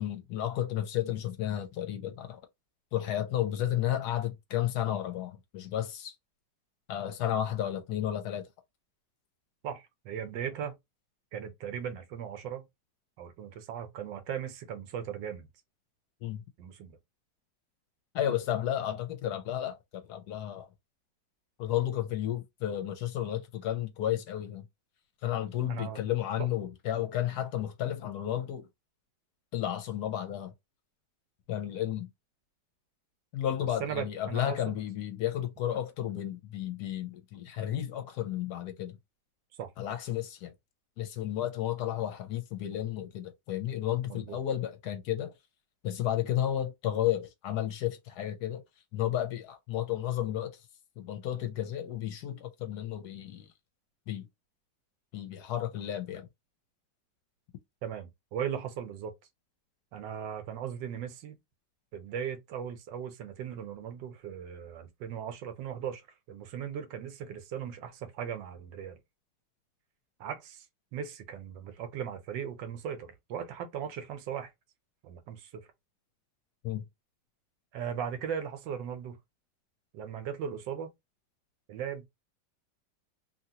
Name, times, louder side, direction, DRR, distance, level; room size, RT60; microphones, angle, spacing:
voice 1, 0.0-2.4 2.9-6.1 6.9-8.5 16.2-16.4 18.1-20.7 21.6-24.6 25.2-28.7 29.5-30.5 31.5-32.1 33.3-39.0 39.8-40.5 41.0-45.3 45.8-48.6 48.9-50.6 51.0-53.5 54.1-54.3 55.1-56.3 76.6-76.8, left 11 dB, 70° left, 1.0 m, -32 dB
voice 2, 9.6-10.8 11.3-12.7 13.2-15.5 16.6-17.0 25.7-26.0 33.8-34.8 39.6-39.7 44.1-44.4 57.8-59.1 59.9-61.4 61.9-69.0 70.2-70.7 70.9-74.5 75.0-75.6 77.7-79.2 79.9-80.9 81.7-82.1, right 8 dB, 85° right, 1.4 m, -38 dB
2.9 x 2.8 x 2.7 m
omnidirectional pair, 1.9 m